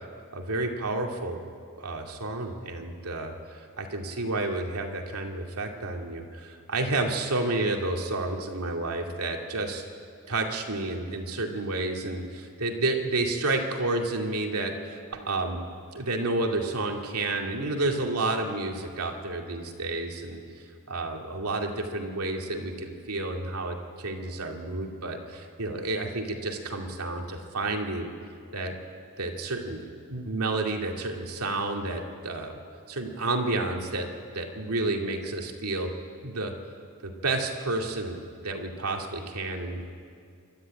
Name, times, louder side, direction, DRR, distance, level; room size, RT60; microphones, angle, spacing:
voice 1, 0.3-1.4 1.8-9.8 10.3-15.6 15.9-20.4 20.9-28.1 28.5-28.7 29.2-29.8 30.1-32.6 32.9-34.1 34.3-35.9 36.2-36.5 37.0-39.8, right 2 dB, 85° right, 2 dB, 2.4 m, -30 dB
27.0 x 13.5 x 9.0 m, 2.3 s
head